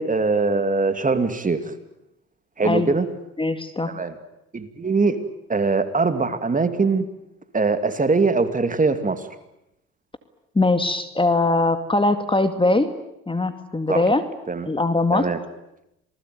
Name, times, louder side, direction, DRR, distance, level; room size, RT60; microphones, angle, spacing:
voice 1, 0.0-1.7 2.6-3.1 3.9-4.1 4.5-5.2 5.5-7.1 7.5-9.3 13.9-14.0 14.5-14.7 15.1-15.4, right 4 dB, 20° right, 9 dB, 2.6 m, -22 dB
voice 2, 3.4-3.9 10.6-12.9 13.3-14.2 14.7-15.3, left 2 dB, 15° left, 9 dB, 2.2 m, -21 dB
27.5 x 19.5 x 9.4 m, 0.87 s
supercardioid pair, 75°, 35 cm